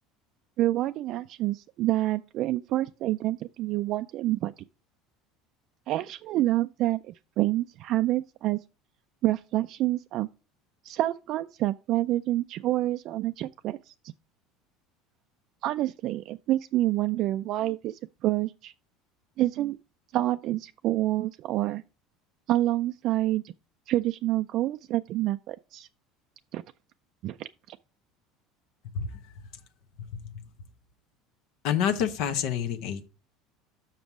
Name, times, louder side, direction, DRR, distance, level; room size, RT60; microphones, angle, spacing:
voice 1, 0.6-4.5 5.9-8.6 9.2-10.3 10.8-13.9 15.6-18.7 19.4-19.8 20.1-21.8 22.5-23.5 23.9-25.9 26.5-26.6 27.2-27.8, right 15 dB, 60° right, 0.3 m, -27 dB
voice 2, 31.6-33.1, left 8 dB, 70° left, 0.9 m, -28 dB
5.9 x 5.3 x 6.0 m
supercardioid pair, 100°, 0 cm